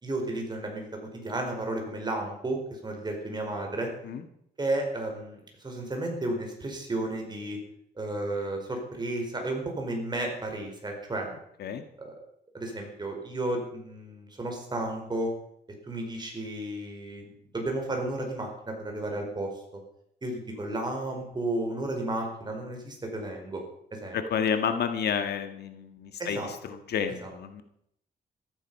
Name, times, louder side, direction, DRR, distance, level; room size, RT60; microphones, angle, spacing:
voice 1, 0.0-3.9 4.6-7.6 8.0-11.3 12.0-12.1 12.5-15.3 15.8-19.5 20.2-23.6 23.9-24.2 26.2-26.5 27.2-27.3, right 2 dB, 25° right, 2 dB, 4.8 m, -33 dB
voice 2, 24.1-27.6, left 7 dB, 75° left, 7 dB, 1.8 m, -30 dB
14.5 x 14.0 x 5.6 m, 0.73 s
cardioid pair, 115°, 17 cm